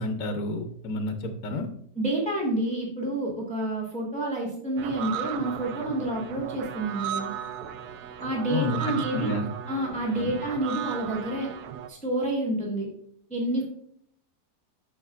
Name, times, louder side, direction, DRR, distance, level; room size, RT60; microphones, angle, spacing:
voice 1, 0.0-1.7 8.5-9.5 10.1-10.3, left 1 dB, 60° left, 5 dB, 1.1 m, -30 dB
voice 2, 2.0-7.3 8.2-9.3 9.7-11.5 11.9-12.9 13.3-13.6, right 1 dB, 5° left, -3 dB, 1.4 m, -29 dB
sound 1, 4.8-11.9, right 9 dB, 70° right, 1.1 m, -36 dB
9.7 x 6.7 x 2.4 m, 0.64 s
omnidirectional pair, 1.8 m